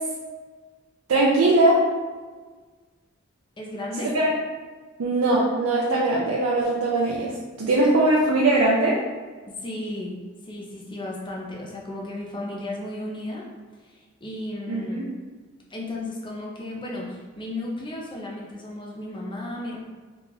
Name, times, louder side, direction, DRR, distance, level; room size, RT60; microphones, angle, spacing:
voice 1, 1.1-1.8 4.0-4.3 5.0-7.3 7.6-9.0 14.7-15.0, right 2 dB, 80° right, -4 dB, 0.5 m, -20 dB
voice 2, 3.6-4.1 9.5-10.2 10.4-13.4 13.8-15.0 15.7-19.8, left 1 dB, 25° left, -3 dB, 0.6 m, -34 dB
3.0 x 2.4 x 3.8 m, 1.4 s
head